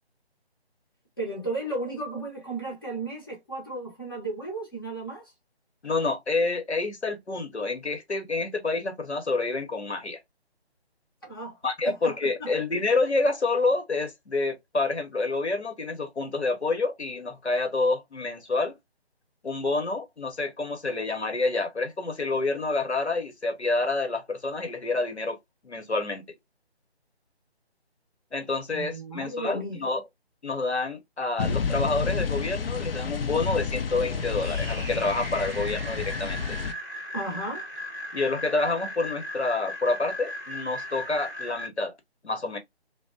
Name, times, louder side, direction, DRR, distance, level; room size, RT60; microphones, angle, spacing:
voice 1, 1.2-5.3 11.2-11.6 11.8-12.5 28.7-29.8 37.1-37.7, right 2 dB, 20° left, 0.6 m, -34 dB
voice 2, 5.8-10.2 11.6-18.8 19.4-25.4 25.6-26.2 28.3-30.0 30.4-36.6 38.1-41.9 42.2-42.6, left 3 dB, 85° left, 0.9 m, -28 dB
sound 1, 31.4-36.7, left 5 dB, 60° left, 0.5 m, -30 dB
sound 2, 33.9-41.7, equal, 20° right, 0.6 m, -38 dB
2.7 x 2.1 x 2.4 m
figure-of-eight pair, 150°, 32 cm